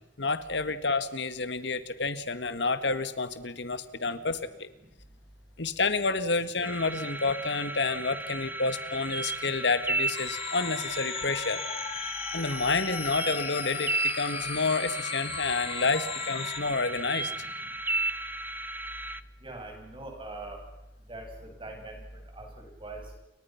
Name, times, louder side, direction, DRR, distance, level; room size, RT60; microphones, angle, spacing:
voice 1, 0.2-4.7 5.6-11.6 12.3-17.3, left 3 dB, 70° left, 12 dB, 1.8 m, -29 dB
sound 1, 6.6-19.2, right 2 dB, 10° right, 0.8 m, -35 dB
sound 2, 10.1-16.6, left 7 dB, 35° left, 1.1 m, -37 dB
voice 2, 19.4-20.6 21.1-23.2, right 2 dB, 30° right, 1 dB, 6.9 m, -43 dB
29.5 x 23.5 x 5.9 m, 0.99 s
head